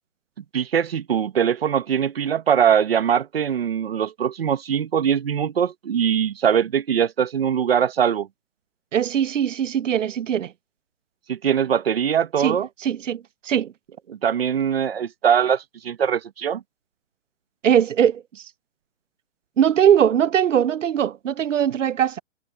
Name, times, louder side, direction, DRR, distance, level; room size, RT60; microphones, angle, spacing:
voice 1, 0.5-8.3 11.3-12.7 14.1-16.6, right 8 dB, 50° right, 1.4 m, -22 dB
voice 2, 8.9-10.5 12.4-13.7 17.6-18.2 19.6-22.2, right 9 dB, 80° right, 0.7 m, -20 dB
hypercardioid pair, 165°, 37 cm